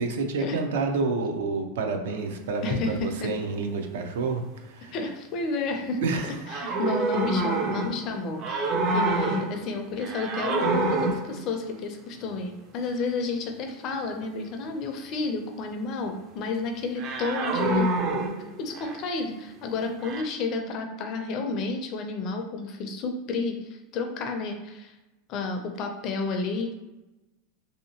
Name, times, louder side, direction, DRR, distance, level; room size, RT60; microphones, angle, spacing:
voice 1, 0.0-5.0 6.0-6.4, right 4 dB, 85° right, 5 dB, 0.5 m, -29 dB
voice 2, 2.6-3.3 4.9-17.9 18.6-24.9 25.3-26.7, left 3 dB, 35° left, 4 dB, 0.4 m, -31 dB
sound 1, 6.5-8.1 8.4-9.7 10.0-11.4 17.0-19.0 20.0-20.2, right 2 dB, 30° right, 0.4 m, -27 dB
3.2 x 2.7 x 2.8 m, 1.0 s
supercardioid pair, 170°, 0 cm